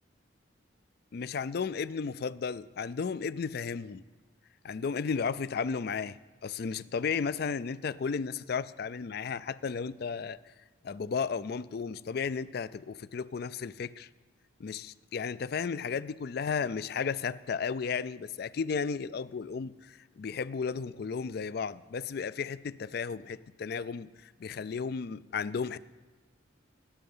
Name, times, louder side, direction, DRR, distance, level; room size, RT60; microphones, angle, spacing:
voice 1, 1.1-4.0 4.6-10.4 10.8-14.1 14.6-25.8, left 5 dB, 50° left, 17 dB, 0.4 m, -34 dB
20.5 x 7.8 x 5.5 m, 1.3 s
head